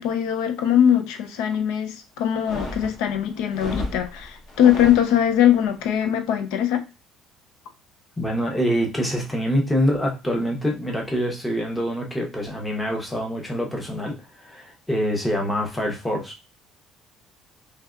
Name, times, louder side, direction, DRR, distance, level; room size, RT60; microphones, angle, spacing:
voice 1, 0.0-6.8, left 10 dB, 85° left, 0.5 m, -21 dB
sound 1, 2.3-5.5, left 1 dB, 45° left, 0.8 m, -34 dB
voice 2, 8.2-16.4, equal, 10° left, 0.6 m, -25 dB
3.3 x 2.8 x 2.4 m
cardioid pair, 175°, 0 cm